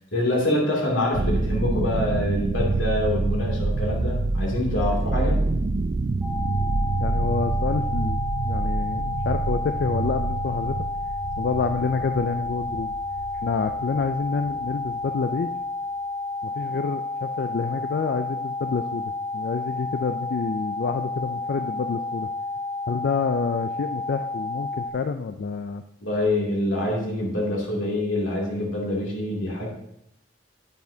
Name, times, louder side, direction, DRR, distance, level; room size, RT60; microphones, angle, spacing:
voice 1, 0.1-5.4 26.0-29.7, left 1 dB, 80° left, -2 dB, 2.7 m, -25 dB
sound 1, 1.1-15.1, right 3 dB, 40° right, 0.4 m, -27 dB
sound 2, 6.2-24.9, left 2 dB, ahead, 0.7 m, -31 dB
voice 2, 7.0-8.2 8.4-10.8 11.4-12.9 13.4-15.5 16.4-22.3 22.9-25.8, left 5 dB, 55° left, 7 dB, 0.4 m, -28 dB
9.3 x 9.2 x 2.8 m, 0.80 s
head